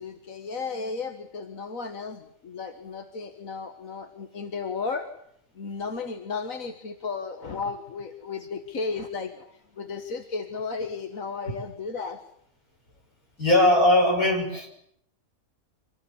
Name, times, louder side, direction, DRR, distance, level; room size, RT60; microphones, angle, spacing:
voice 1, 0.0-5.1 5.6-9.5 9.8-12.2, left 4 dB, 65° left, 6 dB, 2.0 m, -34 dB
voice 2, 13.4-14.7, left 1 dB, 85° left, 2 dB, 7.2 m, -20 dB
26.0 x 19.5 x 9.9 m, 0.70 s
omnidirectional pair, 1.5 m